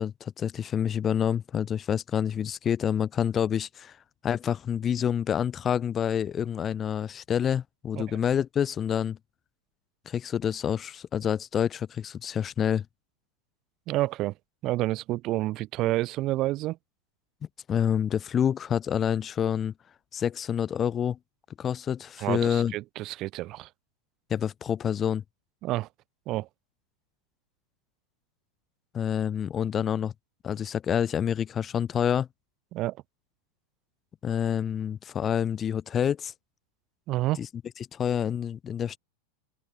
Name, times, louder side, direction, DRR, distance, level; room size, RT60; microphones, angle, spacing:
voice 1, 0.0-4.0 4.2-9.2 10.1-12.9 17.7-19.7 20.1-21.2 21.6-22.7 24.3-25.2 28.9-30.1 30.4-32.3 34.2-36.3 37.4-37.5 37.9-39.0, left 8 dB, 25° left, 0.4 m, -27 dB
voice 2, 13.9-14.3 14.6-16.8 22.2-23.7 25.6-25.9 26.3-26.5 32.7-33.0 37.1-37.4, right 17 dB, 35° right, 0.4 m, -29 dB
figure-of-eight pair, 90°, 0 cm